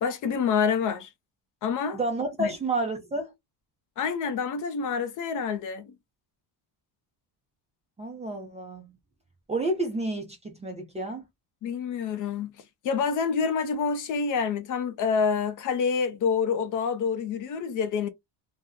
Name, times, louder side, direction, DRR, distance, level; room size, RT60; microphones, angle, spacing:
voice 1, 0.0-1.1 1.6-2.0 2.4-2.5 4.0-5.9 11.6-12.6 12.8-18.1, left 6 dB, 45° left, 0.5 m, -27 dB
voice 2, 1.9-3.3 8.0-8.9 9.5-11.3, right 2 dB, 15° right, 0.4 m, -30 dB
2.7 x 2.0 x 3.5 m
cardioid pair, 175°, 43 cm